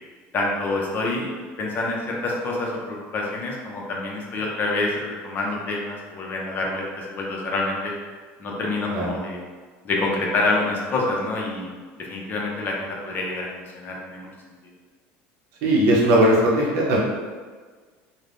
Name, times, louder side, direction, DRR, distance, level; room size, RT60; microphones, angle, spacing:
voice 1, 0.3-1.3 1.6-7.9 8.4-9.4 9.8-11.7 12.0-13.5 13.8-14.3, left 2 dB, 35° left, -2 dB, 0.6 m, -27 dB
voice 2, 15.6-17.0, right 1 dB, 65° right, -4 dB, 0.7 m, -18 dB
3.2 x 2.1 x 2.5 m, 1.5 s
cardioid pair, 135°, 6 cm